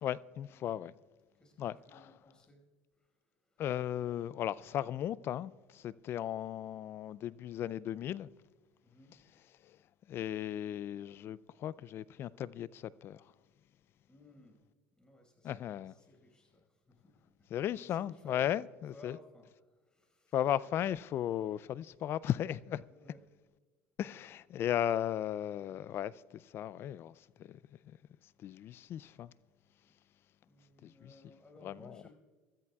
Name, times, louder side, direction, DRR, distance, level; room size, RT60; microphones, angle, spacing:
voice 1, 0.0-0.9 1.6-2.1 3.6-8.3 9.6-9.8 10.1-13.3 15.4-16.0 17.5-19.2 20.3-22.8 24.0-27.6 27.8-28.0 28.4-29.3 30.8-31.3 31.6-32.0, left 11 dB, 50° left, 0.4 m, -36 dB
voice 2, 1.4-2.6 3.0-3.1 3.5-3.6 8.8-9.2 14.1-14.6 15.0-17.2 17.9-18.5 18.9-20.3 22.9-23.2 30.4-32.1, left 2 dB, 15° left, 5.2 m, -58 dB
24.5 x 13.5 x 2.4 m
supercardioid pair, 90°, 5 cm